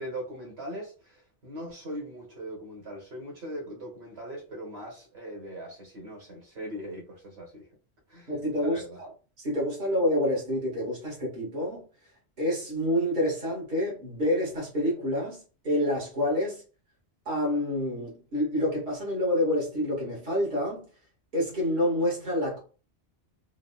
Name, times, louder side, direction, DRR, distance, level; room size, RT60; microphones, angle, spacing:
voice 1, 0.0-7.7 8.1-8.3 8.6-9.0, equal, 75° right, 1.5 m, -40 dB
voice 2, 8.3-8.8 9.4-11.8 12.4-16.6 17.2-20.9 21.3-22.6, left 1 dB, 45° right, 1.5 m, -28 dB
3.8 x 2.0 x 2.2 m
omnidirectional pair, 1.1 m